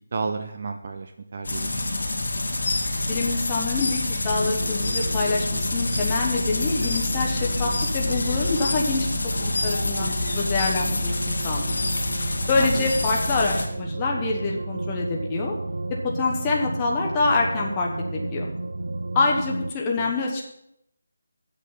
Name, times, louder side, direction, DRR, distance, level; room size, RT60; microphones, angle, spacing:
voice 1, 0.1-2.1 12.5-12.9 19.9-20.1, right 4 dB, 40° right, 7 dB, 0.6 m, -32 dB
sound 1, 1.4-13.7, left 2 dB, 75° left, 2.0 m, -28 dB
sound 2, 2.5-13.7, left 3 dB, 35° left, 1.5 m, -35 dB
voice 2, 3.1-9.1 9.4-11.8 12.5-15.5 16.0-18.5 19.1-20.4, left 3 dB, 15° left, -2 dB, 1.2 m, -26 dB
sound 3, 4.4-19.7, right 2 dB, 85° right, 0.5 m, -32 dB
8.4 x 6.3 x 7.3 m, 0.79 s
figure-of-eight pair, 170°, 0 cm